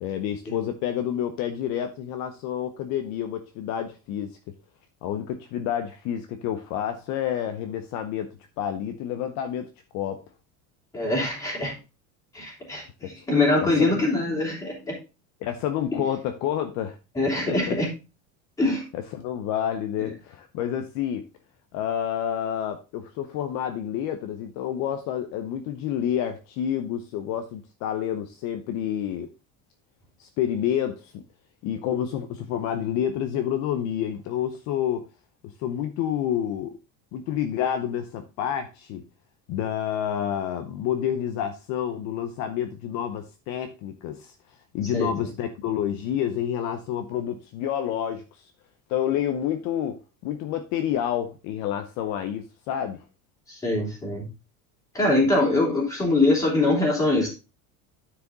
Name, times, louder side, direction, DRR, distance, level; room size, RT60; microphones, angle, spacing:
voice 1, 0.0-4.4 5.0-8.3 8.6-9.7 9.9-10.2 13.2-13.3 13.6-14.0 15.4-17.0 17.5-17.8 19.1-21.2 21.7-29.3 30.2-31.2 31.6-35.1 35.4-36.7 37.1-39.0 39.5-44.3 44.7-48.5 48.9-50.0 50.2-53.0 55.4-55.5, left 10 dB, 50° left, 8 dB, 0.7 m, -29 dB
voice 2, 10.9-11.7 12.3-15.0 15.9-16.0 17.1-17.9 18.6-18.9 44.9-45.1 53.5-54.3 54.9-57.3, left 2 dB, 10° left, -4 dB, 3.2 m, -23 dB
9.6 x 4.9 x 3.9 m, 0.30 s
cardioid pair, 170°, 35 cm